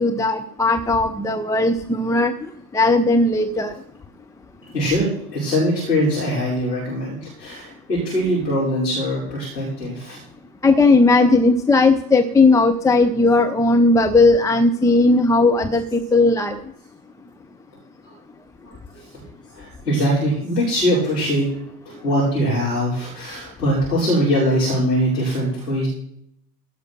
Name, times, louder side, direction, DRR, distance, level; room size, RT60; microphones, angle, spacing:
voice 1, 0.0-2.3 2.7-3.7 10.6-16.6, left 3 dB, 5° left, 5 dB, 0.7 m, -17 dB
voice 2, 4.7-10.2 19.6-21.6 21.9-25.9, equal, 80° left, -7 dB, 5.7 m, -22 dB
17.0 x 6.5 x 6.2 m, 0.70 s
figure-of-eight pair, 80°, 48 cm